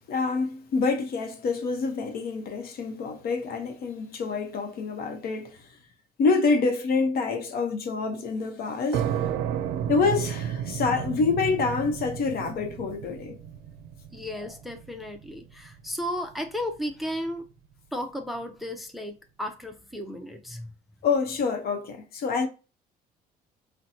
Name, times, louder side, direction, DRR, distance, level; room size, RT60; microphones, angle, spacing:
voice 1, 0.0-5.7 6.2-9.1 9.9-13.4 21.0-22.5, left 4 dB, 65° left, 0.8 m, -27 dB
sound 1, 8.9-16.3, right 9 dB, 85° right, 0.4 m, -32 dB
voice 2, 14.1-17.4 17.9-20.7, equal, ahead, 0.5 m, -34 dB
4.1 x 2.2 x 2.7 m
cardioid pair, 110°, 17 cm